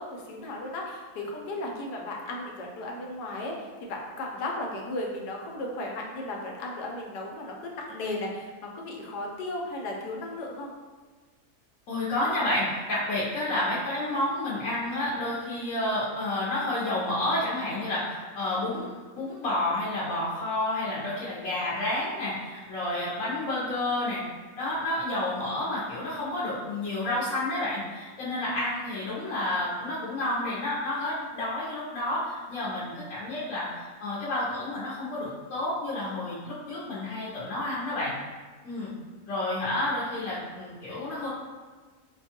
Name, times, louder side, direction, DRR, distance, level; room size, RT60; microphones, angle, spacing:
voice 1, 0.0-10.7, left 2 dB, 90° left, 0 dB, 1.2 m, -35 dB
voice 2, 11.9-24.2 24.6-38.2 38.6-38.9 39.3-41.3, left 1 dB, 60° left, -9 dB, 1.0 m, -30 dB
4.2 x 2.3 x 2.8 m, 1.4 s
omnidirectional pair, 1.7 m